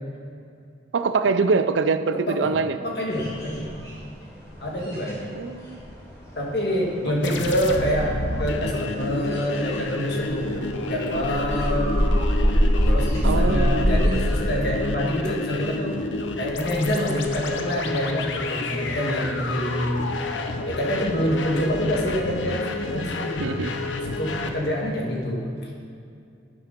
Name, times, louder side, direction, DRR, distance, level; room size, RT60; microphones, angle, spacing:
voice 1, 0.9-2.7 5.3-5.8 7.0-7.1 13.2-14.3 23.4-23.7, right 4 dB, 85° right, 11 dB, 0.5 m, -24 dB
voice 2, 2.3-3.7 4.6-5.3 6.3-8.1 8.4-10.4 10.8-12.0 12.9-15.9 16.4-20.2 20.6-23.4 24.2-25.7, equal, 60° left, -1 dB, 1.6 m, -26 dB
sound 1, 3.1-4.3 4.5-14.6, equal, 20° left, 2.4 m, -25 dB
sound 2, 7.2-24.5, left 2 dB, 80° left, 0.7 m, -30 dB
10.0 x 5.9 x 5.3 m, 2.4 s
head